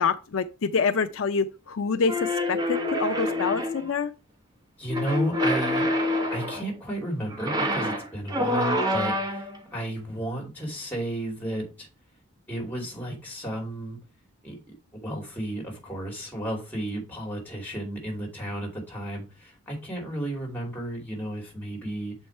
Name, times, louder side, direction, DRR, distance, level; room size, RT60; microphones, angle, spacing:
voice 1, 0.0-4.1, left 5 dB, 70° left, 0.5 m, -26 dB
sound 1, 2.1-3.9 4.9-6.7 7.3-9.6, left 1 dB, 20° right, 1.0 m, -27 dB
voice 2, 4.8-5.8 6.3-11.9 12.5-14.0 14.4-22.2, right 1 dB, 10° left, 2.6 m, -33 dB
7.1 x 4.5 x 4.4 m
head